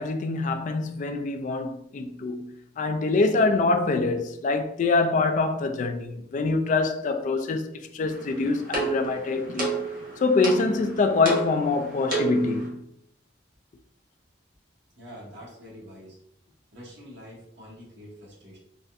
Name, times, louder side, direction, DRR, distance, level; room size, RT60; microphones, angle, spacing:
voice 1, 0.0-9.8 10.2-12.8, left 3 dB, 45° left, 0.3 m, -25 dB
sound 1, 8.1-12.7, right 4 dB, 50° right, 0.9 m, -32 dB
voice 2, 15.0-16.2 16.7-18.6, equal, 70° right, 1.3 m, -45 dB
4.0 x 2.2 x 2.4 m
head